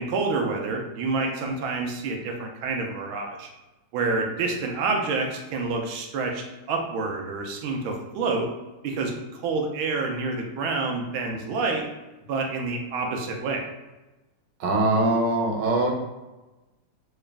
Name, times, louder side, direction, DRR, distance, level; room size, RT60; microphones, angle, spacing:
voice 1, 0.0-3.5 3.9-8.5 8.8-11.8 12.3-13.6, right 3 dB, 85° right, 2 dB, 1.4 m, -28 dB
voice 2, 14.6-15.9, right 2 dB, 70° right, 0 dB, 1.3 m, -22 dB
4.0 x 2.4 x 3.3 m, 1.1 s
omnidirectional pair, 2.2 m